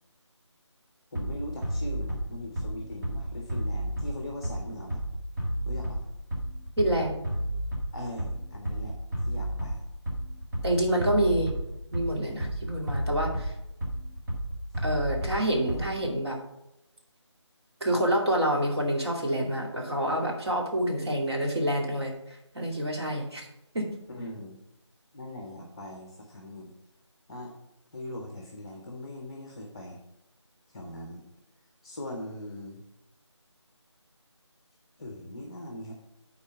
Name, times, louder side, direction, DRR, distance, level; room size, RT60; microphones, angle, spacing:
voice 1, 1.1-5.0 5.6-6.0 7.9-9.0 9.2-9.9 11.1-11.3 24.1-24.6 25.1-26.7 27.3-27.5 27.9-30.0 30.7-31.2 31.8-32.8 35.0-35.9, left 1 dB, 10° left, 1 dB, 0.7 m, -40 dB
Bass drum, 1.1-16.1, right 1 dB, 40° right, 2.2 m, -32 dB
voice 2, 6.8-7.2 10.6-11.6 11.9-13.5 14.8-16.4 17.8-23.5 23.7-23.9, right 1 dB, 60° right, 0 dB, 2.5 m, -27 dB
8.5 x 4.2 x 6.7 m, 0.87 s
figure-of-eight pair, 165°, 15 cm